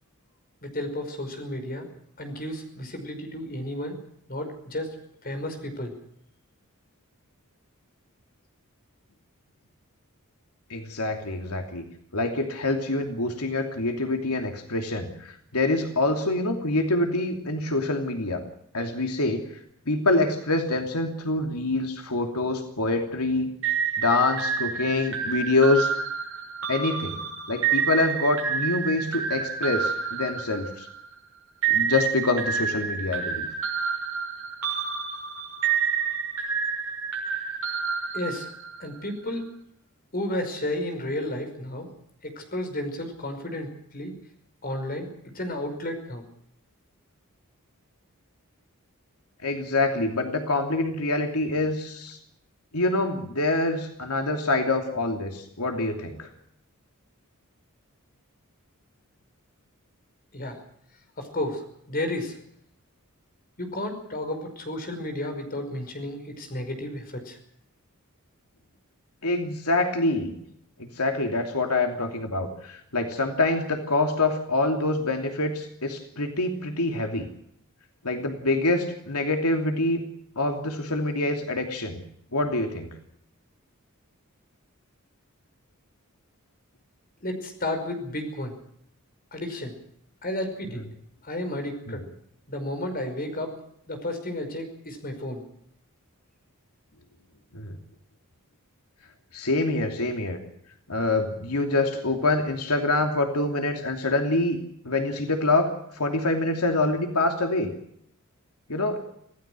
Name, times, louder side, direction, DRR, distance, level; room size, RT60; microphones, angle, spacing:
voice 1, 0.6-1.9 2.2-4.0 4.3-5.0 5.2-5.9 38.1-38.5 38.8-39.5 40.1-41.9 42.2-44.2 44.6-45.1 45.3-46.2 60.3-60.6 61.2-62.4 63.6-67.4 87.2-88.6 89.3-89.7 90.2-90.8 91.2-92.0 92.5-93.6 93.9-95.4, left 1 dB, 40° left, 6 dB, 5.3 m, -32 dB
voice 2, 10.7-11.9 12.1-18.4 18.7-19.5 19.9-23.5 24.0-25.9 26.7-27.2 27.5-30.9 31.7-33.5 49.4-52.2 52.7-56.3 69.2-70.4 70.8-77.2 78.0-80.0 80.4-82.0 82.3-83.0 91.9-92.0 97.5-97.8 99.3-100.4 100.9-104.6 104.8-107.7 108.7-109.0, left 2 dB, 90° left, 4 dB, 2.9 m, -25 dB
sound 1, 23.6-31.1 31.6-38.9, right 6 dB, 65° right, 6.8 m, -28 dB
26.5 x 17.0 x 6.2 m, 0.72 s
head